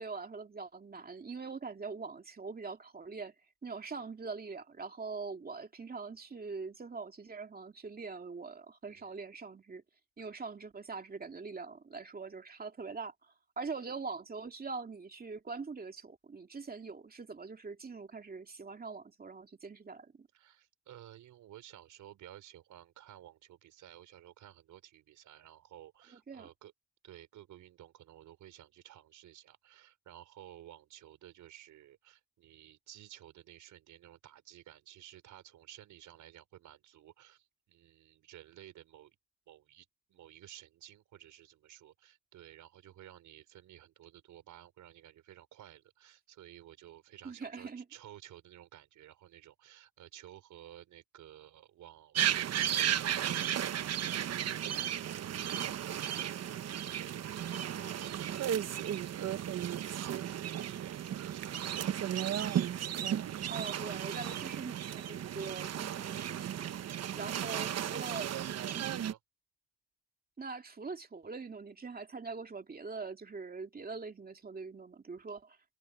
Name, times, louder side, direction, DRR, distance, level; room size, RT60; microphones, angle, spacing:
voice 1, 0.0-3.3 3.6-9.8 10.2-20.3 26.1-26.5 47.2-47.8 57.5-57.9 63.5-66.7 67.1-68.3 68.7-68.9 70.4-75.6, right 4 dB, 30° right, 2.6 m, -43 dB
voice 2, 8.8-9.2 20.3-26.7 27.0-39.2 39.5-54.9 55.3-58.5 58.9-62.5 66.9-67.8 68.4-69.2, right 12 dB, 80° right, 5.7 m, -54 dB
sound 1, 52.1-69.1, right 10 dB, 55° right, 1.1 m, -34 dB
cardioid pair, 90°, 30 cm